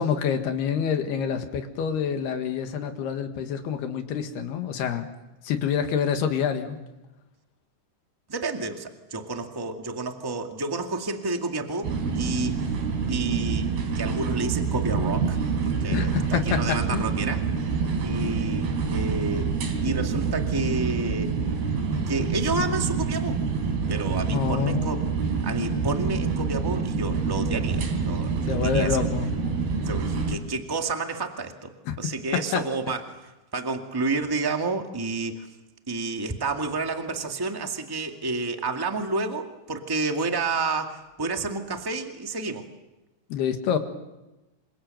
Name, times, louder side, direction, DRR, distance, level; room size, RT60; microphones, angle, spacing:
voice 1, 0.0-5.1 5.4-6.8 15.9-17.1 24.3-24.9 28.5-29.4 31.9-32.6 43.3-43.8, left 7 dB, 85° left, 6 dB, 3.8 m, -27 dB
voice 2, 8.3-12.6 13.1-13.7 13.9-15.4 15.6-17.4 18.0-19.5 19.8-21.3 22.1-23.4 23.9-25.0 25.4-29.1 29.8-31.7 32.0-33.0 33.5-35.5 35.9-42.7, right 3 dB, 15° right, 4 dB, 0.9 m, -30 dB
sound 1, 11.8-30.4, right 5 dB, 85° right, 5.2 m, -27 dB
27.5 x 27.0 x 7.8 m, 1.0 s
omnidirectional pair, 4.5 m